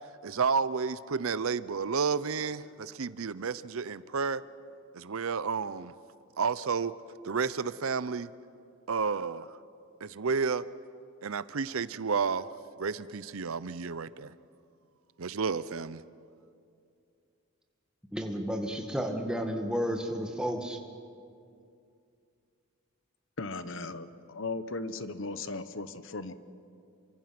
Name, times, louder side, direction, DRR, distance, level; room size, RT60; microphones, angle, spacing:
voice 1, 0.2-4.4 4.9-5.9 6.4-6.9 7.2-8.3 8.9-9.6 10.0-10.6 11.2-12.5 12.8-14.3 15.2-16.0, right 5 dB, 70° right, 16 dB, 0.6 m, -31 dB
voice 2, 18.1-20.8, equal, 5° right, 3 dB, 1.8 m, -32 dB
voice 3, 23.4-26.3, left 3 dB, 60° left, 12 dB, 1.0 m, -37 dB
28.5 x 25.0 x 6.0 m, 2.5 s
head